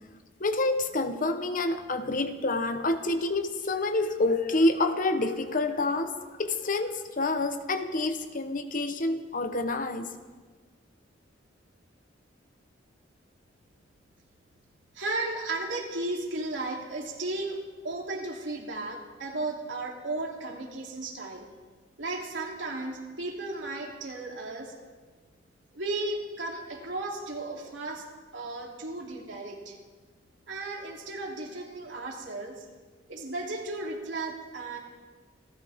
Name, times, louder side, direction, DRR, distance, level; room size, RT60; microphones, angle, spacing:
voice 1, 0.4-10.1, left 2 dB, 45° left, 8 dB, 1.0 m, -28 dB
voice 2, 14.9-21.5 22.0-24.7 25.7-28.0 28.3-29.8 30.5-32.6 33.1-34.8, right 2 dB, 80° right, -1 dB, 3.1 m, -35 dB
28.0 x 13.5 x 3.6 m, 1.3 s
head